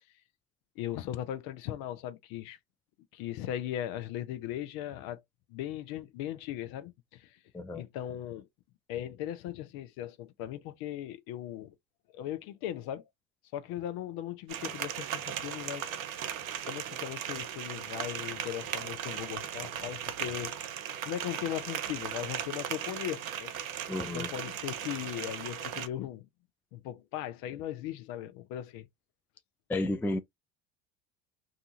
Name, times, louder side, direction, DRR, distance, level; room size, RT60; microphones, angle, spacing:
voice 1, 0.8-2.6 3.1-5.2 5.5-7.4 7.7-8.5 8.9-11.7 12.1-13.0 13.5-15.9 16.7-20.6 21.1-23.6 24.0-26.3 26.7-28.9, left 12 dB, 60° left, 0.8 m, -38 dB
sound 1, 14.5-25.9, right 9 dB, 90° right, 0.6 m, -37 dB
voice 2, 23.9-24.3 29.7-30.2, left 2 dB, 5° left, 0.3 m, -32 dB
2.7 x 2.4 x 2.7 m
hypercardioid pair, 70°, 40 cm